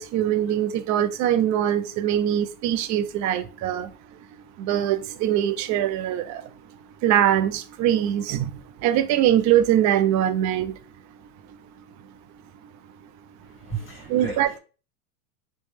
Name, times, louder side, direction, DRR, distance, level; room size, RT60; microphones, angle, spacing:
voice 1, 0.0-3.9 4.6-6.4 7.0-8.5 8.8-10.7 14.1-14.5, right 11 dB, 40° right, 0.5 m, -22 dB
voice 2, 13.4-14.6, right 5 dB, 20° left, 2.0 m, -35 dB
3.2 x 3.1 x 3.2 m
supercardioid pair, 115°, 45 cm